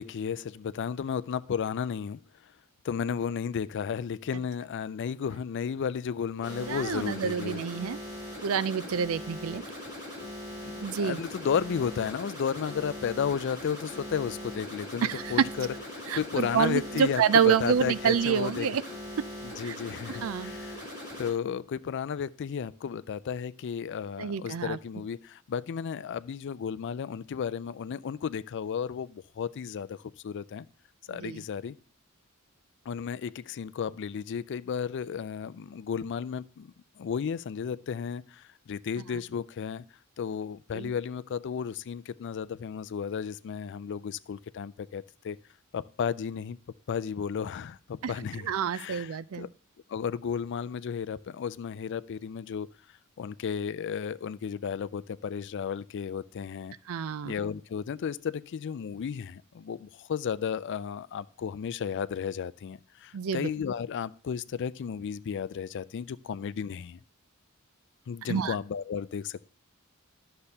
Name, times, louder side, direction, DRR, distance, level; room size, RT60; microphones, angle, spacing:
voice 1, 0.0-2.2 2.8-7.6 10.6-15.7 15.9-18.7 19.4-20.8 21.2-30.0 30.2-30.7 31.1-31.8 32.9-39.8 40.2-45.4 45.7-46.6 46.9-49.5 49.9-52.7 53.2-56.7 57.3-67.0 68.1-69.5, left 7 dB, 55° left, 0.4 m, -33 dB
sound 1, 6.4-21.3, left 1 dB, 20° right, 5.2 m, -40 dB
voice 2, 6.7-8.0 8.4-9.6 10.8-11.2 15.0-15.3 16.1-18.8 19.6-19.8 20.1-20.5 24.2-24.8 31.1-31.4 40.7-40.9 48.0-48.1 48.4-49.5 56.9-57.3 63.1-63.5 68.3-68.5, right 7 dB, 70° right, 0.4 m, -28 dB
11.5 x 6.7 x 2.8 m
head